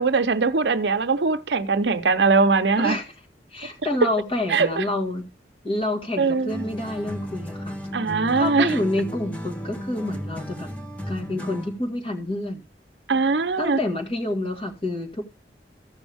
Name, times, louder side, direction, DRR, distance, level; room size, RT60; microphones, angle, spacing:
voice 1, 0.0-3.0 4.5-4.8 6.2-6.6 7.9-8.7 13.1-13.8, right 4 dB, 70° right, 0.7 m, -21 dB
voice 2, 2.8-3.1 3.5-5.3 5.6-7.8 8.3-10.7 11.1-12.7 13.6-15.2, left 1 dB, 30° left, 1.9 m, -28 dB
sound 1, 6.5-11.8, equal, 10° left, 1.2 m, -34 dB
14.5 x 6.2 x 3.5 m
head